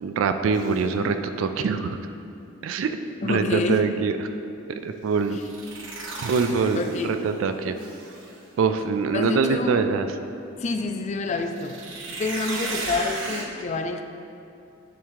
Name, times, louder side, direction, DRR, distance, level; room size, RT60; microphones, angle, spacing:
voice 1, 0.0-2.0 2.6-3.0 3.2-4.2 4.8-5.4 6.2-7.8 8.6-10.1, right 5 dB, 85° right, 8 dB, 0.3 m, -24 dB
sound 1, 0.5-0.8 5.2-7.3 7.8-8.4 11.4-13.4, right 2 dB, 70° right, 0.8 m, -35 dB
voice 2, 3.2-3.9 5.3-5.4 6.8-7.2 9.1-9.8 10.6-11.8 12.1-14.0, left 3 dB, 35° left, 6 dB, 0.3 m, -27 dB
10.5 x 3.6 x 3.1 m, 2.7 s
head